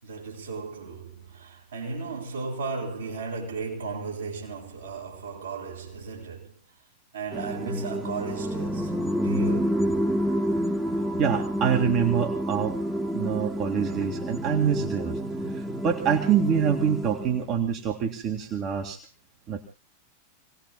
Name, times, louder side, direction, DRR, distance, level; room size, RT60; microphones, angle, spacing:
voice 1, 0.0-6.6 7.1-9.9, right 4 dB, 70° right, 6.8 m, -35 dB
sound 1, 7.3-17.5, equal, 5° right, 1.7 m, -29 dB
voice 2, 11.2-15.2 15.5-19.0 19.5-19.6, right 8 dB, 35° right, 2.2 m, -26 dB
28.5 x 19.0 x 2.3 m
figure-of-eight pair, 90°, 0 cm